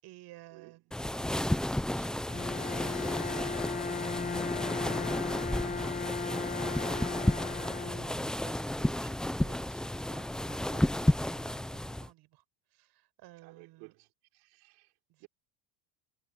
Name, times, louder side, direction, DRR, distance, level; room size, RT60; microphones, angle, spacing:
voice 1, 0.0-12.4 12.7-14.0 15.1-15.3, right 17 dB, 60° right, 5.1 m, -56 dB
sound 1, 0.9-12.1, left 1 dB, ahead, 0.4 m, -32 dB
Bowed string instrument, 2.3-8.4, left 4 dB, 20° left, 1.2 m, -36 dB
voice 2, 13.4-14.1 14.3-14.9 15.2-15.3, right 29 dB, 80° right, 3.7 m, -55 dB
cardioid pair, 125°, 45 cm